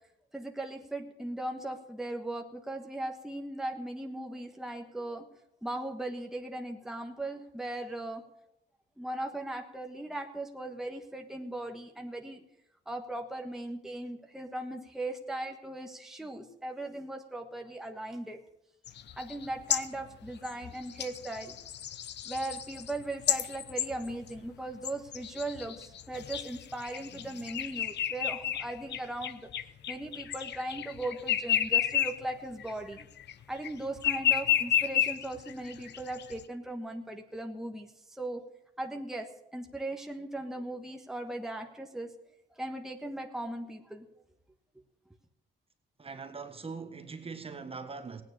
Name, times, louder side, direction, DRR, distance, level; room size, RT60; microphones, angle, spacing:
voice 1, 0.3-5.3 5.6-8.2 9.0-12.4 12.9-18.5 19.2-21.6 22.2-29.5 29.9-33.1 33.5-38.4 38.8-42.1 42.5-44.1, right 1 dB, ahead, 1.4 m, -38 dB
sound 1, 18.9-24.5 24.8-32.3 32.6-33.7 34.0-36.4, left 10 dB, 60° left, 0.8 m, -32 dB
voice 2, 46.0-48.2, right 4 dB, 30° right, 1.6 m, -41 dB
16.5 x 9.5 x 6.5 m
cardioid pair, 90°, 20 cm